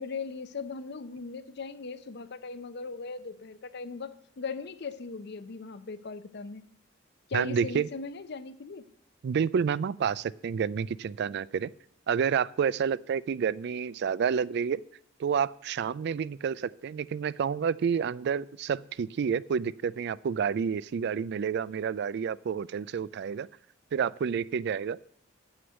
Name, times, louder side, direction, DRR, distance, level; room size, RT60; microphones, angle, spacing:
voice 1, 0.0-6.6 7.3-8.9, left 4 dB, 55° left, 14 dB, 0.6 m, -39 dB
voice 2, 7.3-7.9 9.2-11.7 12.1-14.8 15.2-23.5 23.9-25.0, right 7 dB, 55° right, 20 dB, 0.3 m, -29 dB
7.9 x 6.4 x 8.0 m, 0.65 s
head